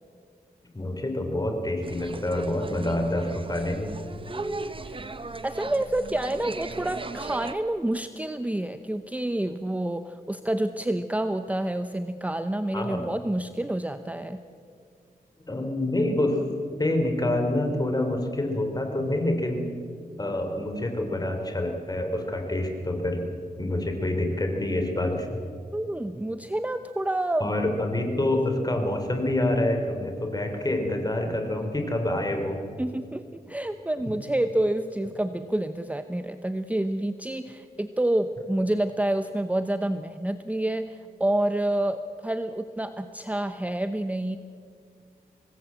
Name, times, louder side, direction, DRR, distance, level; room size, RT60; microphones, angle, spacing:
voice 1, 0.7-3.9 12.7-13.0 15.5-16.4 16.8-19.6 20.2-23.2 23.6-25.4 27.4-32.5, left 1 dB, 25° left, 4 dB, 3.9 m, -27 dB
sound 1, 1.8-7.5, right 3 dB, 35° right, 1.2 m, -38 dB
voice 2, 4.3-5.0 5.4-14.4 25.7-27.5 32.8-44.4, right 1 dB, 10° right, 9 dB, 0.8 m, -28 dB
25.0 x 19.0 x 7.7 m, 2.2 s
wide cardioid pair, 95°, 16 cm